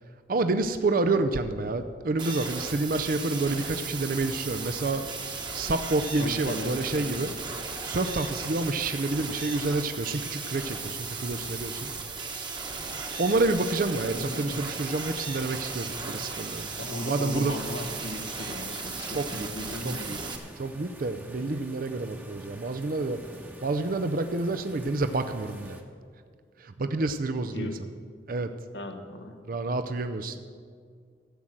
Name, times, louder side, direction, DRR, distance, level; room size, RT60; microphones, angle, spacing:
voice 1, 0.3-5.0 5.5-7.3 7.8-11.9 13.2-16.7 17.0-17.5 19.1-19.5 19.8-20.2 20.6-23.2 23.6-25.8 26.6-27.7 28.3-28.5 29.5-30.4, right 2 dB, 50° right, 8 dB, 0.5 m, -28 dB
sound 1, 2.0-8.1, right 1 dB, 75° right, 3.3 m, -52 dB
sound 2, 2.2-20.4, right 4 dB, 25° right, 1.2 m, -36 dB
voice 2, 6.2-6.8 14.0-14.6 16.8-20.1 27.5-27.9 28.7-29.4, left 1 dB, 90° left, 4 dB, 1.3 m, -36 dB
sound 3, 14.9-25.8, right 1 dB, 10° right, 1.0 m, -48 dB
13.5 x 7.8 x 7.4 m, 2.1 s
head